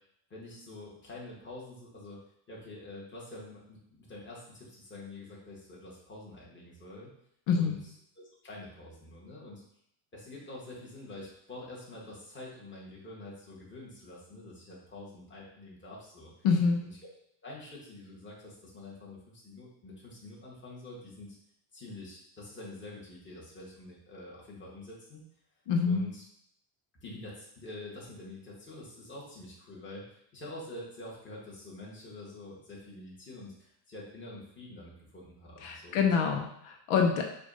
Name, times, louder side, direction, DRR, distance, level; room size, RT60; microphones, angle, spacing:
voice 1, 0.3-2.2 2.5-7.1 7.5-7.8 8.4-9.6 10.1-16.3 16.8-16.9 17.4-21.4 21.7-25.2 25.8-26.2 27.0-36.1, left 2 dB, 25° left, -5 dB, 1.7 m, -46 dB
voice 2, 7.5-7.8 16.4-16.8 25.7-26.0 35.6-37.2, left 5 dB, 80° left, 3 dB, 1.0 m, -26 dB
6.6 x 2.6 x 5.5 m, 0.71 s
cardioid pair, 165°, 49 cm